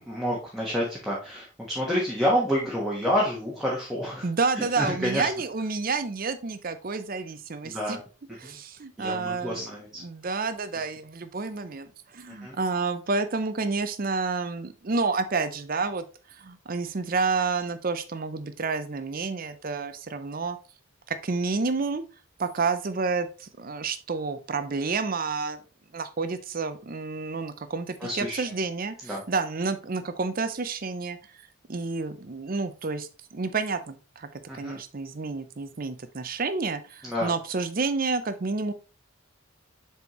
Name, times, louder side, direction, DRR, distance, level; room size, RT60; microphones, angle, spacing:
voice 1, 0.0-4.3 4.5-5.3 7.6-8.0 8.4-8.6 9.0-10.0 12.4-12.6 28.0-28.5 29.0-29.2 34.5-34.8 37.0-37.3, equal, ahead, -5 dB, 1.3 m, -28 dB
voice 2, 4.2-8.0 8.4-9.7 10.0-16.0 16.4-20.6 21.1-22.0 22.4-25.6 25.9-31.2 31.7-38.7, right 4 dB, 40° right, 11 dB, 0.6 m, -29 dB
7.0 x 4.4 x 3.1 m, 0.33 s
head